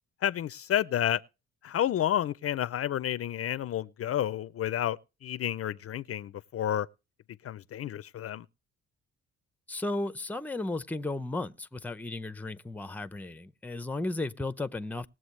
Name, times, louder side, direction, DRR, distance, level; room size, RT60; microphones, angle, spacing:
voice 1, 0.2-1.2 1.6-6.9 7.4-8.5, left 11 dB, 50° left, 0.5 m, -30 dB
voice 2, 9.7-15.1, left 2 dB, 5° left, 0.6 m, -34 dB
20.0 x 7.7 x 3.2 m
cardioid pair, 90°, 30 cm